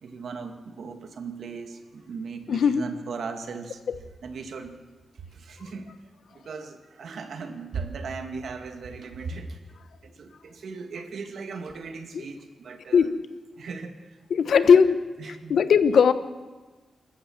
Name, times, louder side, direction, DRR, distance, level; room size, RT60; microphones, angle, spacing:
voice 1, 0.0-3.8 4.2-4.8 5.1-5.9 6.3-9.6 10.0-13.1 13.6-14.2 14.7-14.8 15.2-15.6, right 4 dB, 75° right, 6 dB, 2.2 m, -37 dB
voice 2, 2.5-2.8 3.9-4.0 12.9-13.1 14.3-15.0 15.5-16.1, left 6 dB, 80° left, 12 dB, 1.0 m, -18 dB
26.0 x 14.5 x 7.3 m, 1.3 s
cardioid pair, 90°, 0 cm